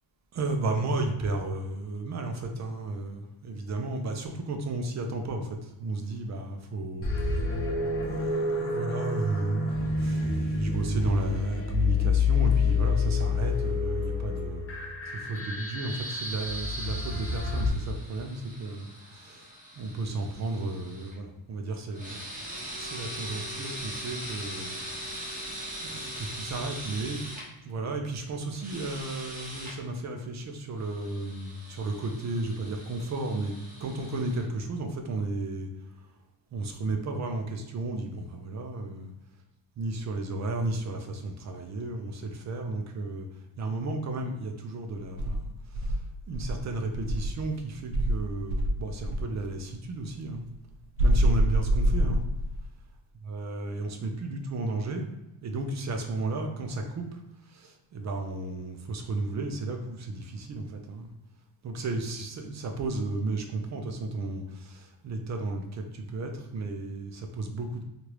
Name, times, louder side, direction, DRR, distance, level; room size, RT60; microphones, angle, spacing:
voice 1, 0.3-7.6 8.0-14.7 15.1-18.9 19.1-19.5 19.8-22.2 22.8-24.8 25.0-25.4 25.8-27.2 27.6-33.5 33.8-35.7 36.5-39.1 39.8-43.3 43.6-45.5 46.3-50.4 51.0-52.2 53.2-55.1 55.4-57.0 57.5-61.1 61.6-67.8, right 2 dB, 35° right, 4 dB, 0.4 m, -33 dB
sound 1, 7.0-17.7, left 4 dB, 30° left, 0.5 m, -28 dB
sound 2, 15.9-21.1 21.9-27.4 28.5-29.7 30.8-34.4, equal, 15° right, 1.1 m, -41 dB
Insect, 45.2-47.4 47.9-49.3 51.0-52.6, equal, 80° right, 0.6 m, -26 dB
3.2 x 2.5 x 2.9 m, 0.96 s
cardioid pair, 120°, 49 cm